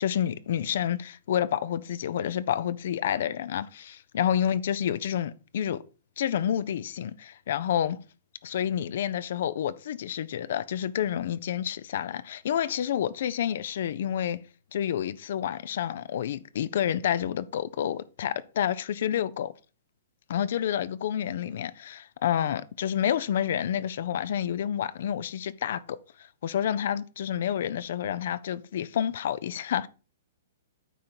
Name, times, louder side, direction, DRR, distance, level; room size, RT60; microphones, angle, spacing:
voice 1, 0.0-5.8 6.2-8.0 8.4-14.4 14.7-19.5 20.3-26.0 26.4-29.9, left 10 dB, 65° left, 0.4 m, -29 dB
9.2 x 3.8 x 4.4 m
hypercardioid pair, 120°, 0 cm